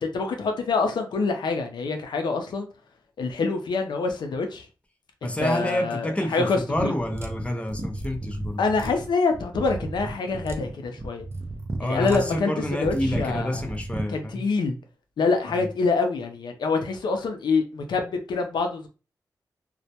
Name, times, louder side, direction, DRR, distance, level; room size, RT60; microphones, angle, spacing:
voice 1, 0.0-2.7 3.2-4.7 5.2-6.9 8.6-11.2 11.8-13.6 14.1-14.8 15.2-18.9, left 4 dB, 90° left, 0.5 m, -26 dB
voice 2, 5.2-8.6 11.8-14.4 15.5-15.7, left 1 dB, 15° left, 0.5 m, -28 dB
sound 1, 6.7-14.1, right 2 dB, 35° right, 0.5 m, -34 dB
2.2 x 2.1 x 2.7 m
cardioid pair, 75°, 7 cm